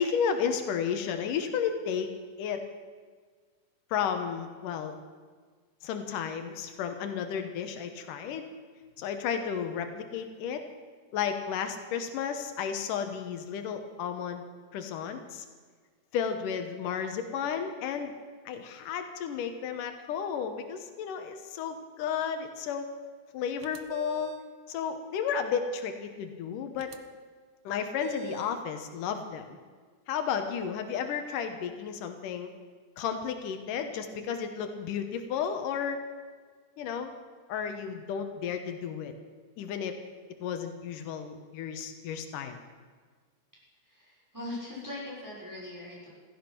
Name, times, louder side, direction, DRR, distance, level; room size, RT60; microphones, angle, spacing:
voice 1, 0.0-2.1 2.4-2.6 3.9-5.0 5.8-8.5 9.0-10.6 11.1-14.4 14.7-15.5 16.1-18.1 18.5-22.9 23.3-24.3 24.7-26.9 27.6-29.6 30.1-32.5 33.0-36.0 36.8-37.1 37.5-39.1 39.6-39.9 40.4-42.6, left 7 dB, 90° left, 7 dB, 2.7 m, -33 dB
sound 1, 23.6-24.5 26.8-27.0 28.0-28.6, right 6 dB, 85° right, 1.2 m, -42 dB
voice 2, 43.8-46.1, left 1 dB, 5° right, -7 dB, 6.2 m, -40 dB
16.0 x 14.5 x 6.1 m, 1.5 s
omnidirectional pair, 3.7 m